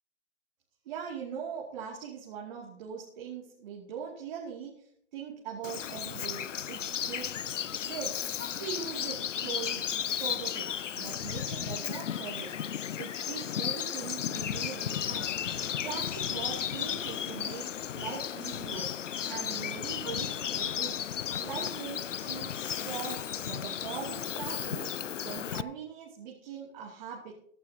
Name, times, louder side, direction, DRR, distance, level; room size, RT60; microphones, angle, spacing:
voice 1, 0.9-7.3 7.8-8.1 8.5-9.8 10.2-10.7 10.9-12.5 13.0-15.4 15.8-17.7 17.9-18.9 19.3-21.0 21.4-24.9 25.2-27.3, right 7 dB, 40° right, -3 dB, 2.7 m, -41 dB
Bird vocalization bird call bird song, 5.6-25.6, left 9 dB, 80° left, 0.7 m, -34 dB
23.0 x 11.5 x 2.9 m, 0.68 s
hypercardioid pair, 145°, 37 cm